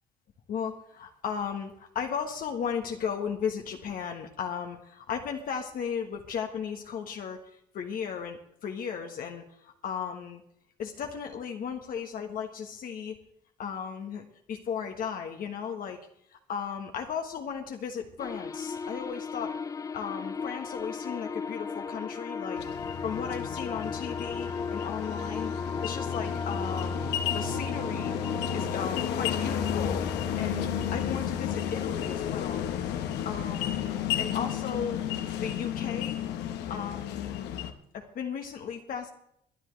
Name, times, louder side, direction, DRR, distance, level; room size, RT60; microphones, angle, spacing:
voice 1, 0.5-7.4 7.7-10.4 10.8-13.2 13.6-16.0 16.5-19.5 19.9-22.6 23.0-25.5 25.8-26.9 27.3-28.1 28.5-30.1 30.4-32.7 33.2-35.0 35.4-36.2 36.7-37.5 37.9-39.1, left 7 dB, 55° left, 3 dB, 1.4 m, -35 dB
sound 1, 18.2-31.2, left 5 dB, 20° left, 0.4 m, -36 dB
sound 2, 22.6-37.7, left 9 dB, 85° left, 1.2 m, -32 dB
22.5 x 10.0 x 3.3 m, 0.73 s
cardioid pair, 110°, 17 cm